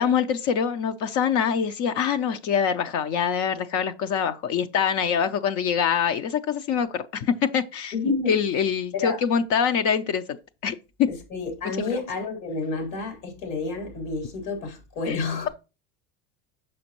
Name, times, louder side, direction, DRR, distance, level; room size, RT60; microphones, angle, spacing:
voice 1, 0.0-7.9 8.3-10.4 10.6-11.1 11.8-11.9 15.1-15.5, left 7 dB, 50° left, 0.6 m, -24 dB
voice 2, 7.9-8.4 8.9-9.2 11.1-15.5, left 3 dB, 90° left, 3.8 m, -29 dB
6.3 x 6.1 x 2.9 m
cardioid pair, 135°, 37 cm